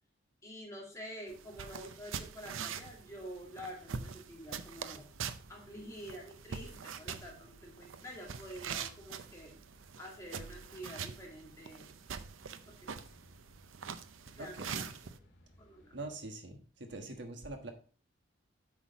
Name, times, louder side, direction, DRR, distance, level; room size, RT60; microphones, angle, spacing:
voice 1, 0.4-5.0 5.5-9.5 10.0-11.9 12.7-12.9 14.4-14.8 15.6-15.9, equal, 15° left, -2 dB, 2.3 m, -48 dB
sound 1, 1.3-15.2, right 6 dB, 90° right, 0.6 m, -44 dB
sound 2, 4.6-16.2, left 1 dB, 65° left, 1.9 m, -65 dB
voice 2, 14.4-14.9 15.9-17.7, right 2 dB, 65° right, 5 dB, 1.3 m, -44 dB
8.1 x 6.2 x 4.0 m, 0.38 s
head